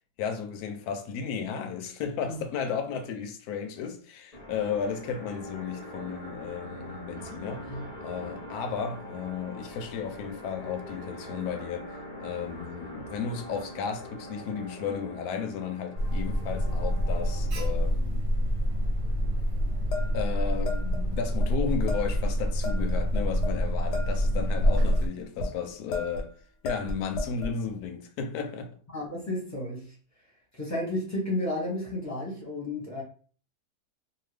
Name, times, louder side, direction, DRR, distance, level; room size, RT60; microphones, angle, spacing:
voice 1, 0.2-18.3 20.1-26.3 26.6-28.8, left 6 dB, 75° left, 1.0 m, -34 dB
sound 1, 4.3-17.6, equal, 45° left, 0.5 m, -43 dB
Alarm, 16.0-25.1, equal, 60° right, 1.0 m, -27 dB
sound 2, 19.9-21.0 21.4-21.5 21.9-22.2 22.6-23.6 23.9-25.5 25.9-26.3 26.6-27.5, left 2 dB, 90° left, 1.4 m, -34 dB
voice 2, 28.9-29.9 30.5-33.0, left 1 dB, 15° left, 0.7 m, -32 dB
2.8 x 2.3 x 3.2 m
omnidirectional pair, 1.7 m